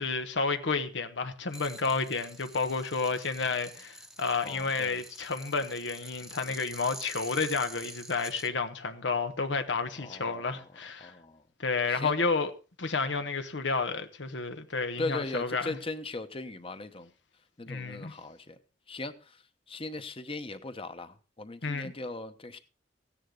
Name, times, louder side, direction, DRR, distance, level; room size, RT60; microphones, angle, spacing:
voice 1, 0.0-11.1 11.6-12.5 12.8-15.8 17.7-18.1 21.6-21.9, left 4 dB, 85° left, 1.1 m, -31 dB
sound 1, 1.5-8.5, right 1 dB, 5° right, 0.9 m, -47 dB
voice 2, 4.4-5.0 10.0-10.6 11.0-11.4 11.9-12.1 15.0-17.1 17.6-18.6 18.9-19.4 19.7-22.6, left 2 dB, 30° left, 1.0 m, -39 dB
15.5 x 10.0 x 3.8 m
head